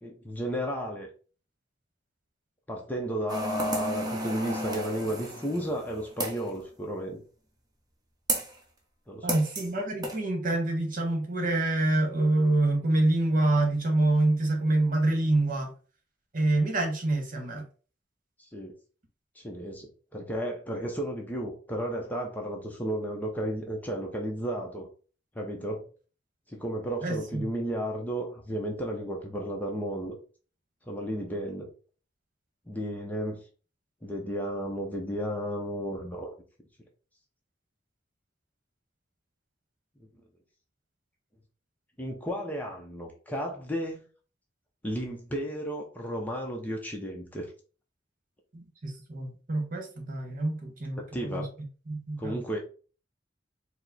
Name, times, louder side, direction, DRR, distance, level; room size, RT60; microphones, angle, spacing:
voice 1, 0.0-1.1 2.7-7.2 9.1-9.4 18.4-18.7 19.4-24.9 25.3-25.9 26.5-30.2 30.9-31.7 32.7-33.4 34.0-36.3 42.0-44.1 44.8-47.5 51.1-51.5 52.2-52.6, equal, 10° left, 0 dB, 0.7 m, -33 dB
sound 1, 3.3-6.5 8.3-8.6 9.3-9.7 10.0-10.2, right 1 dB, 20° right, 0.9 m, -33 dB
voice 2, 9.2-15.7 16.3-17.6 27.0-27.5 48.5-51.5 51.9-52.4, right 2 dB, 50° right, 2 dB, 1.3 m, -26 dB
4.9 x 2.1 x 4.0 m, 0.39 s
head